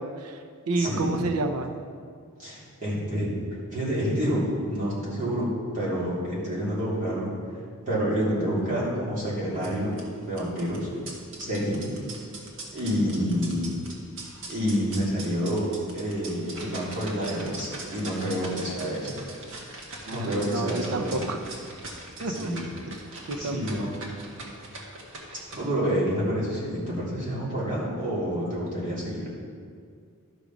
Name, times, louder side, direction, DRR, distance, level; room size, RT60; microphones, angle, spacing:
voice 1, 0.0-1.8 20.1-21.5 22.2-22.5 22.9-23.8, right 2 dB, 85° right, 6 dB, 0.6 m, -30 dB
voice 2, 0.8-1.2 2.4-3.3 3.7-7.3 7.9-10.0 10.2-10.9 11.4-12.0 12.7-13.7 14.5-19.1 19.5-19.7 20.0-21.3 22.3-22.6 23.3-23.9 25.5-29.3, equal, 35° right, -8 dB, 2.9 m, -28 dB
sound 1, 9.5-25.5, right 2 dB, 60° right, 1.6 m, -42 dB
12.0 x 5.1 x 6.0 m, 2.2 s
head